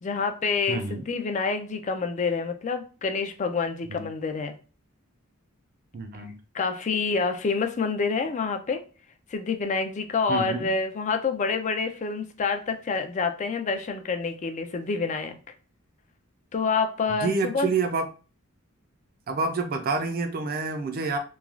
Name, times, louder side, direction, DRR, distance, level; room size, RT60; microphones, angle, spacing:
voice 1, 0.0-4.6 6.5-8.8 9.3-15.4 16.5-17.7, left 4 dB, 35° left, 0.3 m, -27 dB
voice 2, 0.7-1.0 3.9-4.1 5.9-6.3 10.3-10.7 17.1-18.1 19.3-21.2, right 4 dB, 45° right, 0.4 m, -28 dB
3.1 x 2.3 x 2.4 m
head